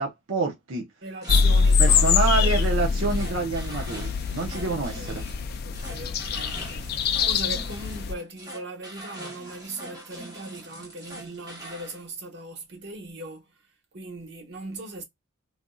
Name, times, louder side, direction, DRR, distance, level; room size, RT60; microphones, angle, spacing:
voice 1, 0.0-0.8 1.8-5.2, right 3 dB, 80° right, 0.8 m, -27 dB
voice 2, 1.0-2.6 4.6-5.1 5.6-13.5 13.9-15.0, right 2 dB, 55° right, 1.1 m, -39 dB
sound 1, 1.2-12.0, right 1 dB, 20° right, 1.0 m, -43 dB
sound 2, 1.3-8.1, left 5 dB, 50° left, 0.3 m, -24 dB
3.4 x 2.5 x 2.3 m
head